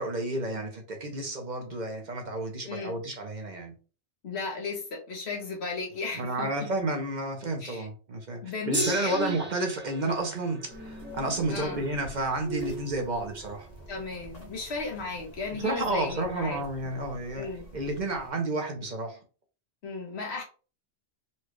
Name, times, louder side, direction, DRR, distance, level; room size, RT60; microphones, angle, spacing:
voice 1, 0.0-3.7 6.1-13.7 15.6-17.5 17.7-19.2, right 2 dB, 45° right, 0.9 m, -31 dB
voice 2, 2.7-3.0 4.2-6.7 7.6-7.9 8.4-9.4 11.5-11.8 13.9-16.6 17.3-17.7 19.8-20.4, left 3 dB, 70° left, 1.4 m, -34 dB
Gong, 8.7-15.1 15.9-16.0, right 2 dB, 15° right, 0.5 m, -40 dB
sound 1, 9.8-14.8, right 3 dB, 85° right, 1.7 m, -44 dB
sound 2, 10.7-18.3, equal, 40° left, 1.0 m, -49 dB
4.2 x 2.4 x 3.1 m
omnidirectional pair, 1.2 m